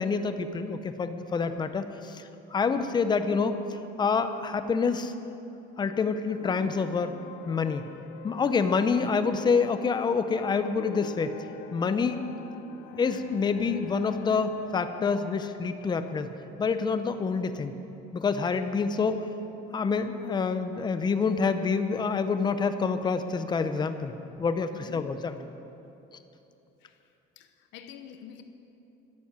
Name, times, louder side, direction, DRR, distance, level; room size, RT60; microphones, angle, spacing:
voice 1, 0.0-3.6 4.0-5.1 5.8-7.1 7.5-7.9 8.2-11.4 11.7-12.2 13.0-16.3 16.6-17.8 18.1-19.2 19.7-24.1 24.4-25.3, left 5 dB, 25° left, 9 dB, 0.7 m, -27 dB
sound 1, 6.3-17.6, left 8 dB, 70° left, 0.7 m, -45 dB
voice 2, 11.8-12.2 18.4-18.5 24.7-25.1 26.8-27.0 27.4-28.4, left 8 dB, 90° left, 8 dB, 1.0 m, -46 dB
12.0 x 10.5 x 7.5 m, 2.9 s
cardioid pair, 150°, 19 cm